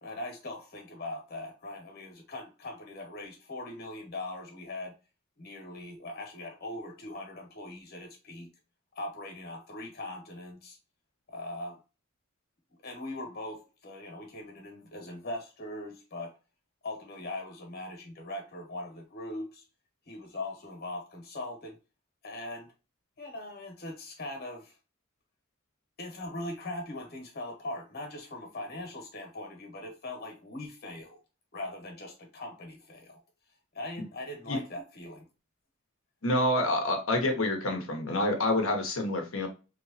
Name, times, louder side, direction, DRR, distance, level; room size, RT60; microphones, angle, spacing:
voice 1, 0.0-4.9 5.4-8.5 8.9-10.8 11.3-11.8 12.8-16.4 16.8-19.6 20.1-21.8 22.2-22.7 23.2-24.8 26.0-31.2 31.5-33.2 33.7-35.3, left 1 dB, 50° left, 1.4 m, -40 dB
voice 2, 36.2-39.5, left 1 dB, 70° left, 1.1 m, -27 dB
3.3 x 3.1 x 2.6 m
head